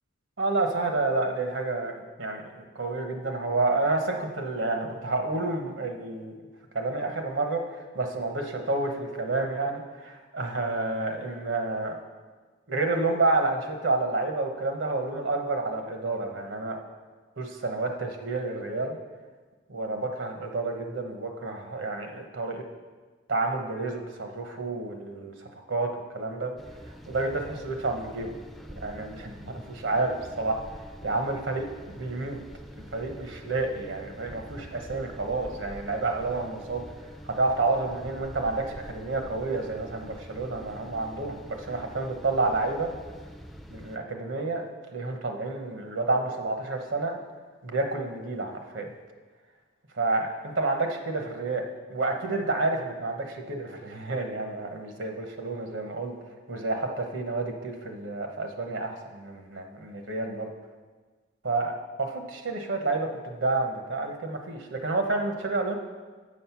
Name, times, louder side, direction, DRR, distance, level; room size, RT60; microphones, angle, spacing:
voice 1, 0.4-6.3 6.7-12.0 12.7-16.8 17.4-19.0 19.7-22.6 23.3-26.5 27.1-28.4 28.7-30.6 31.0-32.4 32.9-36.8 37.2-42.9 43.7-44.6 44.9-47.2 47.6-48.9 49.9-51.6 51.9-56.1 56.5-60.5 61.4-65.8, right 3 dB, 80° right, 4 dB, 1.0 m, -29 dB
sound 1, 26.6-44.0, equal, ahead, 0.4 m, -45 dB
7.4 x 6.4 x 5.8 m, 1.4 s
head